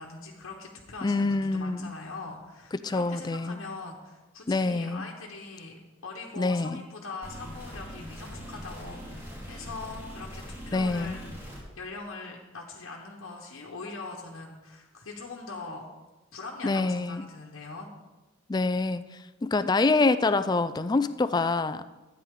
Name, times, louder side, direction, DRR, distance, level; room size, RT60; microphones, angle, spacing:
voice 1, 0.0-11.2 11.7-15.9 16.3-17.9, left 3 dB, 80° left, -2 dB, 1.1 m, -42 dB
voice 2, 1.0-1.9 2.8-3.6 4.5-5.1 6.4-6.8 10.7-11.2 16.6-17.3 18.5-19.1 19.4-21.9, left 3 dB, 20° left, 13 dB, 0.3 m, -26 dB
sound 1, 7.2-11.6, equal, 15° right, 2.6 m, -41 dB
13.0 x 9.2 x 3.7 m, 1.1 s
head